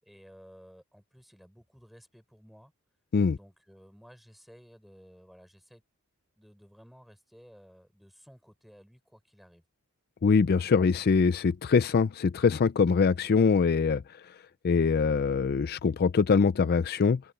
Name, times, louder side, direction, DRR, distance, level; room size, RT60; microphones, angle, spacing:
voice 1, 0.0-2.7 3.3-5.8 6.4-9.6, equal, ahead, 6.2 m, -55 dB
voice 2, 10.2-14.0 14.6-17.2, left 5 dB, 45° left, 0.4 m, -23 dB
open air
head